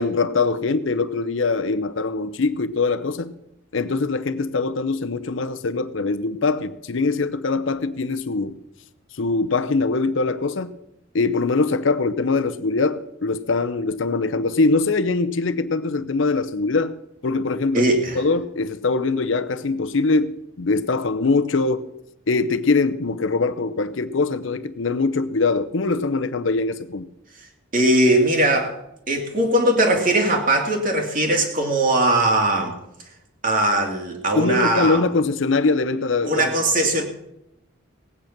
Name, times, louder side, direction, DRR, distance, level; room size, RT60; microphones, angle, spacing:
voice 1, 0.0-3.3 3.7-8.6 9.1-10.7 11.1-17.0 17.2-17.8 18.1-21.9 22.3-27.1 34.4-36.8, left 3 dB, 75° left, 0.7 m, -22 dB
voice 2, 17.7-18.2 27.7-28.8 29.1-32.8 33.4-35.0 36.3-37.0, right 1 dB, 45° right, 2.6 m, -20 dB
18.5 x 9.1 x 5.9 m
head